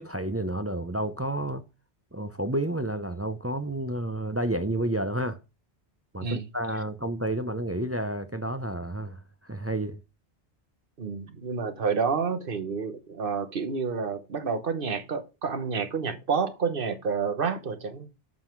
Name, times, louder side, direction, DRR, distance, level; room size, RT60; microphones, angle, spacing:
voice 1, 0.0-1.6 2.1-5.4 6.1-10.0, right 1 dB, 20° right, 0.4 m, -30 dB
voice 2, 11.0-18.1, right 5 dB, 50° right, 1.2 m, -29 dB
7.4 x 5.7 x 4.5 m
omnidirectional pair, 1.2 m